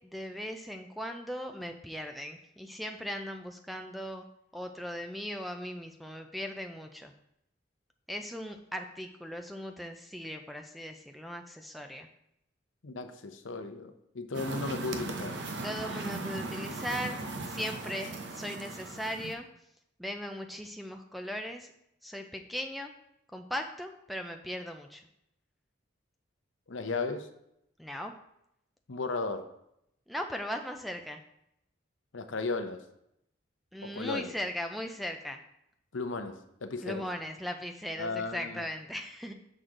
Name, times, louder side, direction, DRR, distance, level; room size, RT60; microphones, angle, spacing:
voice 1, 0.0-4.3 4.5-7.1 8.1-12.1 15.6-19.5 20.0-21.7 22.0-22.9 23.3-25.0 27.8-28.1 30.1-31.2 33.7-35.4 36.8-39.3, equal, ahead, 5 dB, 0.4 m, -38 dB
voice 2, 12.8-15.4 26.7-27.3 28.9-29.5 32.1-32.8 33.8-34.3 35.9-37.1 38.0-38.7, left 3 dB, 80° left, 8 dB, 0.7 m, -35 dB
sound 1, 14.3-19.3, right 2 dB, 65° right, 0.7 m, -38 dB
6.6 x 6.1 x 3.7 m, 0.79 s
head